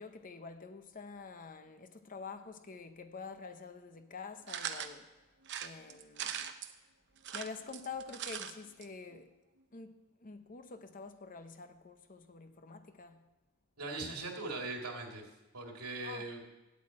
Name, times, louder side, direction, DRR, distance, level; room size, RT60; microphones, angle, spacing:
voice 1, 0.0-5.1 5.6-6.4 7.3-9.3 9.7-13.2 16.0-16.3, left 4 dB, 35° left, 0.7 m, -47 dB
sound 1, 4.5-4.9 5.4-6.7 7.2-8.5 8.8-8.9 9.1-9.2, right 9 dB, 50° right, 0.7 m, -40 dB
voice 2, 13.8-15.2 15.5-16.4, right 3 dB, 85° right, 2.4 m, -40 dB
8.4 x 8.4 x 8.6 m
head